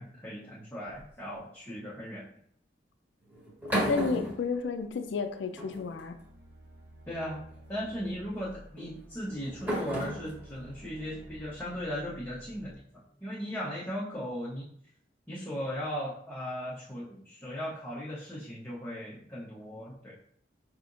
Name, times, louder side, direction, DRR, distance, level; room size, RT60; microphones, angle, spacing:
voice 1, 0.0-2.2 7.1-7.4 7.7-12.8 13.2-14.7 15.3-20.1, equal, 10° left, -9 dB, 0.7 m, -37 dB
sound 1, 0.9-1.4 3.3-5.2 5.6-6.2 7.3-7.6 8.8-12.1, equal, 10° right, 1.2 m, -36 dB
voice 2, 3.9-6.1, left 5 dB, 85° left, 7 dB, 0.4 m, -31 dB
sound 2, 5.3-12.8, equal, 70° right, 0.8 m, -52 dB
4.9 x 2.8 x 2.5 m, 0.64 s
head